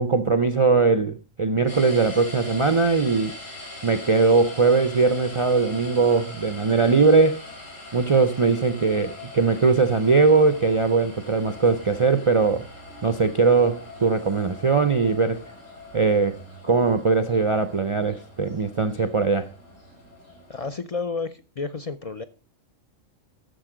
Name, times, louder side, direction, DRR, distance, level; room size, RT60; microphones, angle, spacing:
voice 1, 0.0-3.4 3.8-7.4 7.9-12.6 13.0-15.4 15.9-16.4 16.6-19.5, right 4 dB, 55° right, 0.3 m, -20 dB
sound 1, 1.7-20.7, left 2 dB, 85° left, 4.0 m, -42 dB
voice 2, 20.5-22.2, left 4 dB, 60° left, 0.3 m, -31 dB
10.0 x 6.8 x 4.9 m
omnidirectional pair, 1.3 m